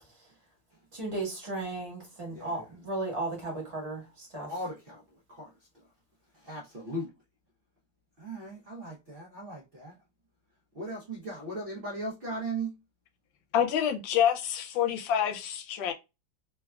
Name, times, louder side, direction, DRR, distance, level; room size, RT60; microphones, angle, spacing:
voice 1, 0.9-4.5, right 2 dB, 25° right, 0.8 m, -35 dB
voice 2, 4.5-5.0 5.3-5.5 6.3-7.1 8.2-9.9 10.7-12.7, right 2 dB, 75° right, 0.5 m, -37 dB
voice 3, 13.5-15.9, left 9 dB, 80° left, 1.3 m, -27 dB
3.3 x 2.3 x 2.2 m
omnidirectional pair, 2.1 m